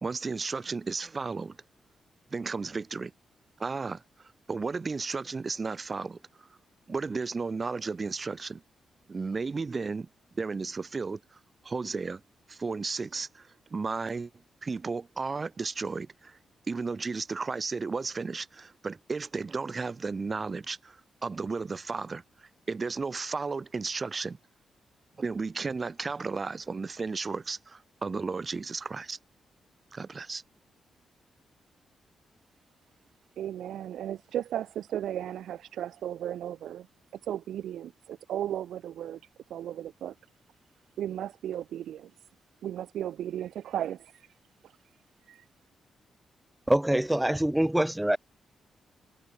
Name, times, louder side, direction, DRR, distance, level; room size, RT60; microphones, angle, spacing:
voice 1, 0.0-1.6 2.3-3.1 3.6-6.5 6.9-8.6 9.1-10.1 10.3-11.4 11.6-12.2 12.5-14.3 14.6-16.4 16.7-24.4 25.2-29.2 29.9-30.4, right 4 dB, 40° right, 1.0 m, -34 dB
voice 2, 33.4-36.9 37.1-39.2 39.5-40.1 41.0-42.1 42.6-44.0, right 11 dB, 85° right, 1.5 m, -35 dB
voice 3, 46.7-48.2, right 1 dB, 10° right, 0.5 m, -24 dB
cardioid pair, 65°, 0 cm